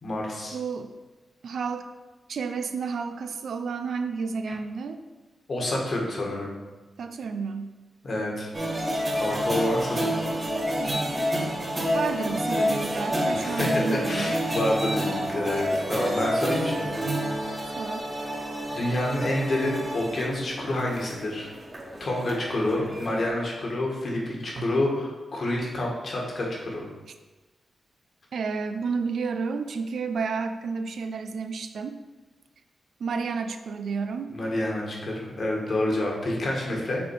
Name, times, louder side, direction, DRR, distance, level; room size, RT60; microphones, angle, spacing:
voice 1, 0.0-0.5 5.5-6.5 8.0-8.5 9.1-10.1 13.3-17.0 17.6-17.8 18.7-21.5 22.0-26.8 34.3-37.0, left 1 dB, 60° left, -2 dB, 1.6 m, -28 dB
voice 2, 0.5-0.9 1.4-1.9 2.3-5.0 7.0-7.7 10.8-11.3 11.9-14.3 17.8-18.1 24.6-24.7 28.3-32.0 33.0-34.3, right 5 dB, 75° right, 8 dB, 0.4 m, -31 dB
sound 1, 8.5-23.3, equal, 35° right, 1.8 m, -29 dB
6.0 x 3.5 x 4.7 m, 1.2 s
cardioid pair, 60°, 0 cm